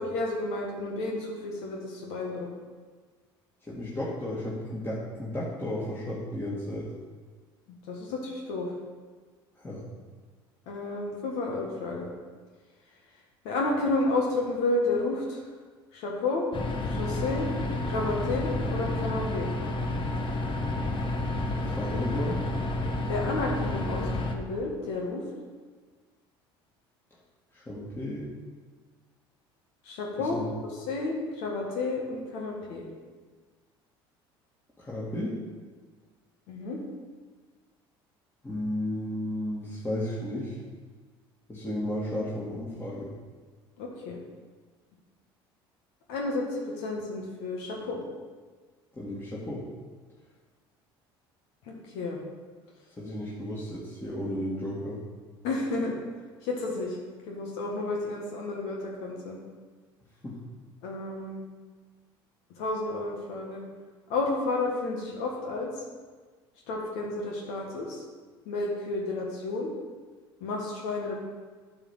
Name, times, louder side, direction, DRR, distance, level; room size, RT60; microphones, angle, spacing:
voice 1, 0.0-2.5 7.9-8.7 10.7-12.1 13.4-15.4 15.9-16.5 16.9-17.5 17.8-19.5 23.1-25.2 29.8-30.4 30.9-32.8 36.5-36.8 43.8-44.2 46.1-48.0 51.7-52.2 55.4-55.9 56.4-57.0 57.3-59.4 60.8-61.4 62.6-63.6 64.1-65.7 66.7-68.0 68.4-69.7 70.4-71.1, left 2 dB, 70° left, -1 dB, 1.6 m, -31 dB
voice 2, 3.6-6.9 9.6-9.8 21.6-22.4 27.5-28.3 30.2-30.5 34.8-35.3 38.4-40.6 41.5-43.1 48.9-49.6 53.0-55.0 60.2-60.4, left 1 dB, 20° left, -7 dB, 2.2 m, -33 dB
sound 1, 16.5-24.3, left 2 dB, 45° left, 1.2 m, -30 dB
8.8 x 4.3 x 7.3 m, 1.4 s
hypercardioid pair, 75°, 12 cm